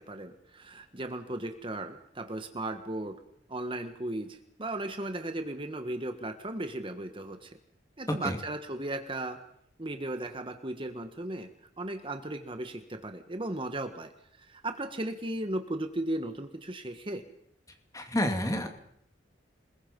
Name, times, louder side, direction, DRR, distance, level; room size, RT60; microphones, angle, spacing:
voice 1, 0.0-3.2 3.5-7.6 8.0-9.4 9.8-11.5 11.8-14.1 14.4-17.2, right 1 dB, 30° right, 7 dB, 1.4 m, -36 dB
voice 2, 17.9-18.7, left 1 dB, 20° left, 5 dB, 2.5 m, -29 dB
28.0 x 21.0 x 5.4 m, 0.72 s
head